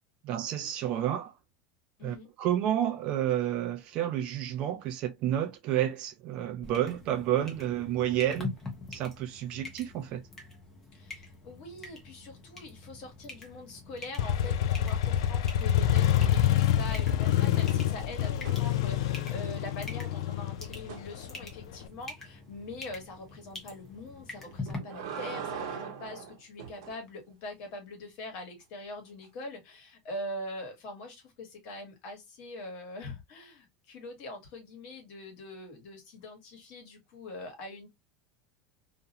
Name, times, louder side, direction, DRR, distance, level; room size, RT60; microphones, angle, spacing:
voice 1, 0.2-1.3 2.0-8.5 8.9-10.2, right 11 dB, 40° right, 0.3 m, -30 dB
sound 1, 6.6-24.8, left 3 dB, 10° left, 0.7 m, -45 dB
voice 2, 10.9-37.9, left 2 dB, 45° left, 1.1 m, -43 dB
Motorcycle, 14.2-21.8, left 11 dB, 85° left, 0.3 m, -27 dB
sound 2, 15.9-16.6 16.9-19.3 20.9-21.1 24.5-27.0 29.2-29.3, right 7 dB, 85° right, 0.7 m, -42 dB
2.4 x 2.1 x 2.7 m
supercardioid pair, 170°, 3 cm